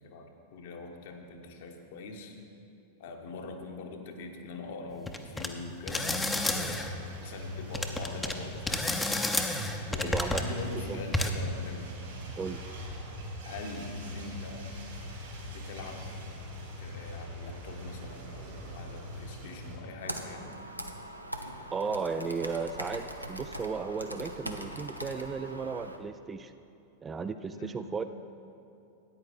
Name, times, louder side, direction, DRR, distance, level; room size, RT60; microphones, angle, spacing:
voice 1, 0.0-2.4 3.0-6.9 7.2-8.9 9.9-11.9 13.4-14.8 15.5-16.2 16.8-20.6 27.5-27.8, left 3 dB, 55° left, 3 dB, 1.2 m, -42 dB
sound 1, 5.1-5.5 5.9-6.9 7.7-8.3 8.7-10.5 11.1-11.3, left 2 dB, 10° left, 0.7 m, -30 dB
sound 2, 5.9-19.8, left 1 dB, 60° right, 2.7 m, -42 dB
voice 2, 10.0-10.4 10.7-11.0 12.4-12.7 21.7-26.5 27.0-28.0, right 5 dB, 20° right, 10 dB, 0.4 m, -35 dB
Computer keyboard, 20.0-26.0, right 1 dB, 90° right, 0.6 m, -41 dB
13.5 x 9.3 x 4.2 m, 2.7 s
figure-of-eight pair, 90°, 0 cm